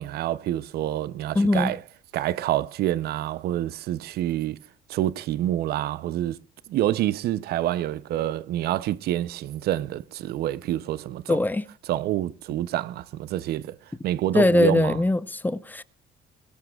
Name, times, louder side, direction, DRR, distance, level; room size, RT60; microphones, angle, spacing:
voice 1, 0.0-1.8 2.1-4.6 4.9-6.4 6.7-11.4 11.9-13.8 14.0-15.0, right 13 dB, 70° right, 0.6 m, -27 dB
voice 2, 1.3-1.7 11.3-11.6 14.3-15.8, left 2 dB, 10° left, 0.7 m, -21 dB
22.5 x 16.0 x 2.3 m
cardioid pair, 110°, 17 cm